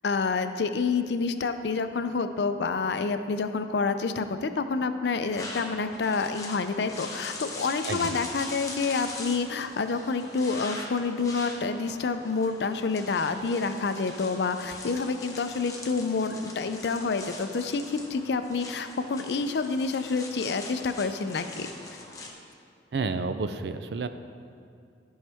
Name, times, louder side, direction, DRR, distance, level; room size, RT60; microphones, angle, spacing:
voice 1, 0.0-21.7, left 4 dB, 70° left, 9 dB, 0.4 m, -28 dB
sound 1, 5.2-22.3, left 2 dB, 20° left, 0.9 m, -42 dB
voice 2, 7.9-8.2 22.9-24.1, right 4 dB, 70° right, 10 dB, 0.4 m, -30 dB
13.5 x 5.5 x 3.5 m, 2.5 s
head